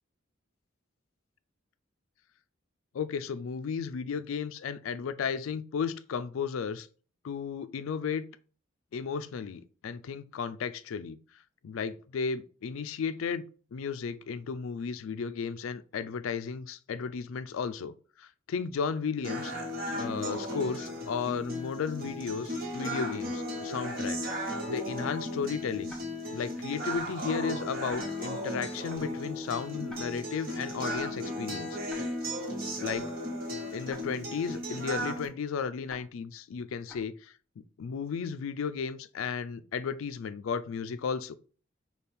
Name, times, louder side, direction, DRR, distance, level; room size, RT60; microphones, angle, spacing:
voice 1, 2.9-6.9 7.2-8.3 8.9-11.2 11.6-13.4 13.7-19.5 19.9-24.2 24.7-26.0 26.3-31.8 32.8-33.1 33.7-41.4, left 6 dB, 75° left, 0.4 m, -34 dB
sound 1, 19.2-35.3, equal, 45° right, 1.3 m, -35 dB
Tick-tock, 25.9-26.0 26.9-27.0 27.9-28.0 28.9-29.0 29.9-30.0 30.9-31.0 31.9-32.0 32.9-33.0 33.9-34.0 34.9-35.0 35.9-36.0 36.9-37.0, left 1 dB, 5° left, 0.8 m, -47 dB
5.1 x 2.3 x 4.2 m
head